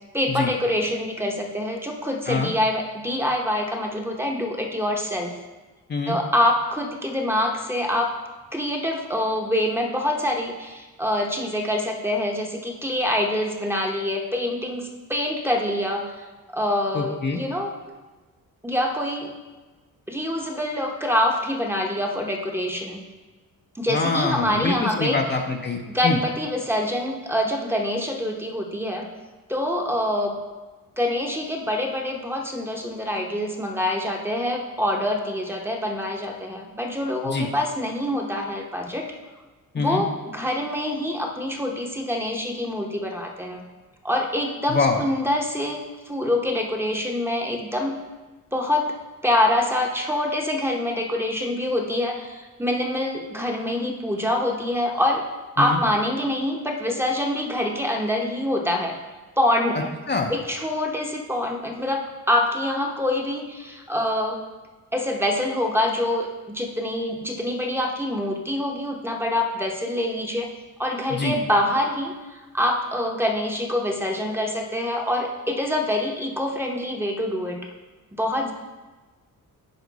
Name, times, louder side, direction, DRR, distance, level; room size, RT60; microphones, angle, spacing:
voice 1, 0.1-5.4 6.1-8.1 8.5-17.7 18.6-19.3 20.1-23.0 23.7-25.2 25.9-29.1 29.5-30.4 31.0-39.1 39.8-43.6 44.0-47.9 48.5-48.9 49.2-55.2 55.6-59.0 59.4-59.9 60.3-64.4 64.9-70.5 70.8-77.6 78.1-78.5, left 1 dB, 5° right, 1 dB, 0.9 m, -25 dB
voice 2, 16.9-17.4 23.9-26.2 37.2-37.5 39.7-40.0 44.7-45.0 55.6-55.8 60.1-60.3 71.1-71.3, left 4 dB, 30° left, 2 dB, 0.7 m, -25 dB
9.4 x 5.1 x 4.1 m, 1.3 s
cardioid pair, 110°, 35 cm